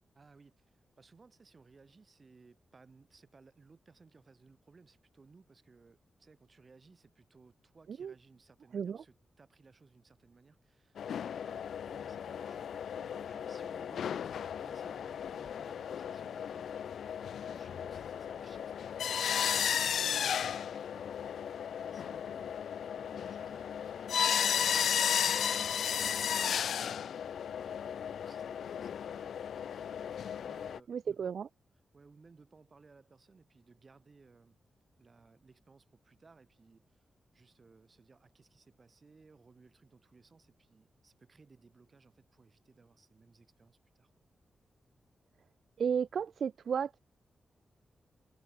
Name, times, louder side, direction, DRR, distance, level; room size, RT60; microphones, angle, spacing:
voice 1, 0.2-17.0 17.3-21.1 21.8-27.1 27.6-31.4 31.9-34.6 35.0-37.1 37.3-44.1 46.1-46.2, right 4 dB, 30° right, 7.2 m, -61 dB
sound 1, 11.0-30.8, left 8 dB, 90° left, 0.4 m, -34 dB
voice 2, 30.9-31.5 45.8-47.0, right 7 dB, 60° right, 0.4 m, -33 dB
wide cardioid pair, 175°, 0 cm